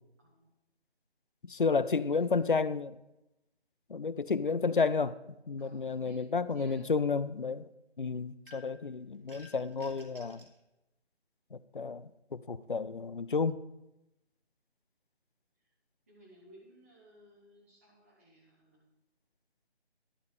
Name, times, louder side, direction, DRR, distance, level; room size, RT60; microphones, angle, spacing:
voice 1, 0.2-0.5 1.6-2.6 5.6-6.2 6.5-7.1 16.1-18.8, equal, 10° right, 0.9 m, -58 dB
voice 2, 1.4-3.0 3.9-5.2 5.5-7.7 8.0-10.4 11.5-13.6, left 4 dB, 50° left, 0.4 m, -31 dB
sound 1, 8.5-8.9 9.3-10.6, left 1 dB, 55° right, 1.6 m, -54 dB
12.5 x 5.3 x 6.4 m
figure-of-eight pair, 160°, 34 cm